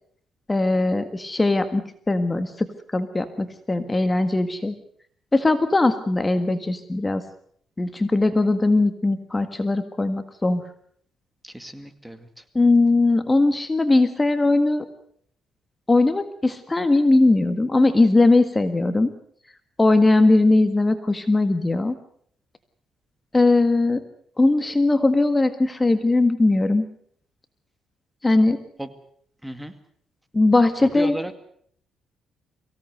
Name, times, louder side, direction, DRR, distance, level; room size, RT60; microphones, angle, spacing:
voice 1, 0.5-4.7 5.3-7.2 7.8-10.6 12.5-14.9 15.9-19.1 19.8-22.0 23.3-24.0 24.4-26.8 28.2-28.6 30.3-31.1, left 2 dB, 20° left, 10 dB, 1.7 m, -20 dB
voice 2, 11.4-12.4 28.8-28.9 29.4-29.8 30.8-31.3, right 1 dB, 5° right, 10 dB, 2.1 m, -34 dB
23.5 x 17.0 x 8.0 m, 0.63 s
cardioid pair, 90°, 0 cm